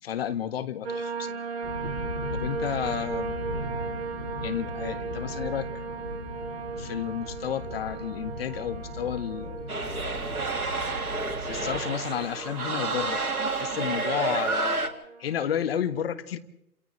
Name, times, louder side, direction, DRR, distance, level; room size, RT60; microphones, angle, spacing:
voice 1, 0.0-1.4 2.4-3.3 4.4-5.8 6.8-9.7 11.5-14.8 15.2-16.4, left 9 dB, 40° left, 11 dB, 1.5 m, -32 dB
sound 1, 0.8-15.5, right 4 dB, 45° right, 2.4 m, -37 dB
sound 2, 1.6-11.8, left 1 dB, 80° left, 3.9 m, -38 dB
sound 3, 9.7-14.9, right 3 dB, 70° right, 2.2 m, -30 dB
30.0 x 28.0 x 3.2 m, 0.79 s
figure-of-eight pair, 130°, 45 cm